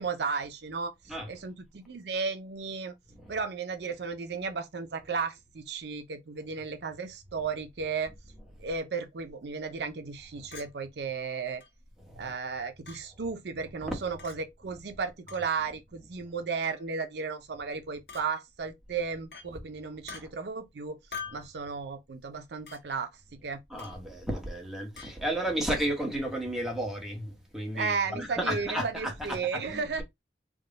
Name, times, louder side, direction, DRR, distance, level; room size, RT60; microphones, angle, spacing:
voice 1, 0.0-0.9 1.3-2.9 3.3-8.1 8.6-11.6 12.2-21.0 21.3-23.1 23.4-23.6 27.7-30.0, right 5 dB, 70° right, 0.5 m, -34 dB
Chink clink, 10.5-10.7 11.6-11.7 12.9-13.0 14.2-14.4 15.3-15.5 16.6-16.9 18.1-18.3 19.3-19.5 20.1-20.2 21.1-21.5 22.7-22.8 23.8-24.0 25.0-25.1, left 5 dB, 70° left, 1.3 m, -43 dB
voice 2, 12.0-12.3 13.9-14.0 20.1-20.3 23.7-30.0, right 1 dB, ahead, 1.0 m, -33 dB
3.6 x 2.2 x 3.8 m
head